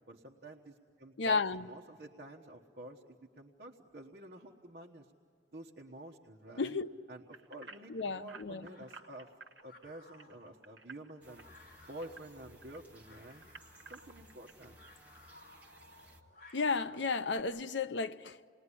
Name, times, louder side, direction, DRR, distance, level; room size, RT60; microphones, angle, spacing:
voice 1, 0.1-5.1 5.5-6.8 7.1-9.3 9.6-11.4 11.8-13.5 13.9-14.8, right 1 dB, 55° right, 1.3 m, -50 dB
voice 2, 1.2-1.7 6.6-6.9 7.9-8.7 16.5-18.5, left 4 dB, 85° left, 0.7 m, -33 dB
sound 1, 7.3-12.8 13.2-14.7 15.1-15.3 15.8-15.9, right 4 dB, 80° right, 1.4 m, -53 dB
sound 2, 7.5-17.4, left 2 dB, 60° left, 3.7 m, -61 dB
sound 3, 11.2-16.2, right 1 dB, 10° right, 1.7 m, -60 dB
28.5 x 20.0 x 10.0 m
head